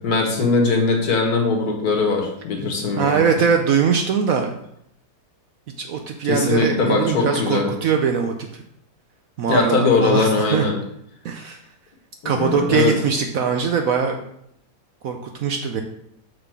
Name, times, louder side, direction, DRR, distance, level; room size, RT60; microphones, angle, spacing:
voice 1, 0.0-3.2 6.2-7.7 9.5-10.8 12.2-12.9, left 3 dB, 60° left, 2 dB, 1.7 m, -20 dB
voice 2, 3.0-4.5 5.8-8.6 9.4-10.7 11.2-11.6 12.2-14.2 15.0-15.8, right 6 dB, 65° right, 4 dB, 0.9 m, -21 dB
6.4 x 4.0 x 5.9 m, 0.74 s
omnidirectional pair, 1.9 m